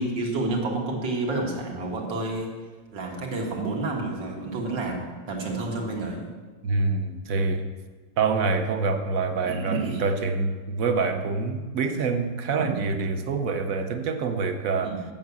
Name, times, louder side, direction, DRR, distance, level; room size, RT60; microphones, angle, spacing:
voice 1, 0.0-2.5 2.9-6.3 9.4-10.0 14.8-15.0, right 2 dB, 85° right, 2.2 m, -29 dB
voice 2, 6.6-7.7 8.2-15.0, right 4 dB, 60° right, 1.0 m, -26 dB
7.2 x 7.0 x 8.1 m
omnidirectional pair, 1.9 m